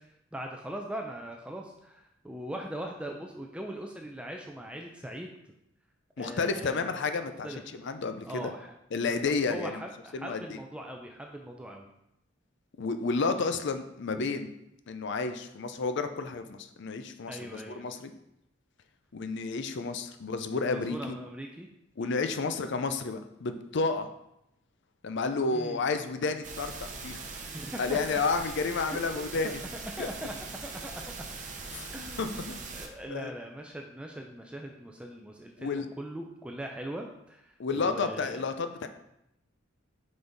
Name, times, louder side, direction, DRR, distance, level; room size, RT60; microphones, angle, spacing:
voice 1, 0.3-5.3 6.2-6.9 7.4-7.6 8.3-8.7 9.0-11.9 17.3-17.8 20.7-21.7 22.0-22.2 25.5-25.8 27.3-28.2 28.8-30.3 30.6-31.2 31.9-38.5, right 1 dB, 5° right, 2 dB, 0.4 m, -41 dB
voice 2, 6.2-7.5 7.8-8.5 8.9-9.8 10.1-10.4 12.8-14.5 14.9-18.1 19.1-21.0 22.0-24.1 25.0-27.2 27.8-29.6 30.0-30.1 31.7-31.9 32.2-32.6 33.1-33.3 35.6-35.9 37.6-38.9, left 4 dB, 60° left, 8 dB, 0.5 m, -31 dB
sound 1, 26.4-32.9, right 4 dB, 40° right, 0.8 m, -41 dB
5.8 x 5.2 x 3.9 m, 0.81 s
head